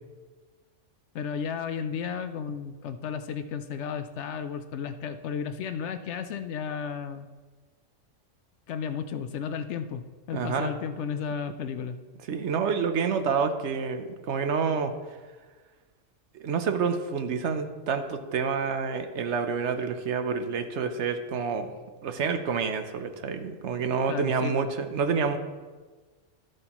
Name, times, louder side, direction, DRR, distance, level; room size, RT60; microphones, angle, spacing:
voice 1, 1.1-7.3 8.7-12.0 24.1-24.7, left 7 dB, 70° left, 10 dB, 0.8 m, -33 dB
voice 2, 10.3-10.7 12.3-14.9 16.3-21.7 22.0-25.4, right 5 dB, 65° right, 8 dB, 1.0 m, -28 dB
13.0 x 7.7 x 3.0 m, 1.4 s
omnidirectional pair, 1.3 m